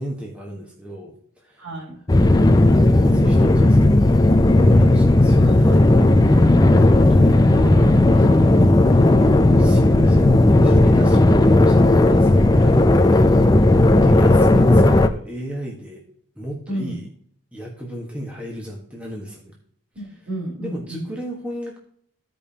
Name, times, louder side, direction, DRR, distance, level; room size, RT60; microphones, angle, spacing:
voice 1, 0.0-1.7 2.2-4.0 4.6-8.3 9.1-16.0 16.4-17.1 17.5-19.5 20.6-21.8, equal, 5° right, -2 dB, 1.3 m, -34 dB
voice 2, 1.6-2.0 7.5-8.8 16.7-16.9 19.9-21.1, right 1 dB, 65° right, -2 dB, 3.5 m, -32 dB
sound 1, 2.1-15.1, left 2 dB, 15° left, 0.4 m, -14 dB
15.0 x 5.3 x 2.8 m, 0.63 s
head